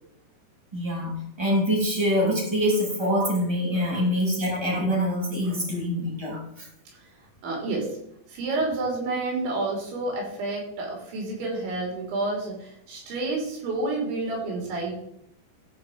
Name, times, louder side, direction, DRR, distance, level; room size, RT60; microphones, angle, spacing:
voice 1, 0.7-6.7, equal, 10° right, -3 dB, 2.1 m, -25 dB
voice 2, 7.4-7.9 8.3-14.9, right 2 dB, 85° right, -1 dB, 5.4 m, -29 dB
13.0 x 5.1 x 4.5 m, 0.73 s
omnidirectional pair, 5.2 m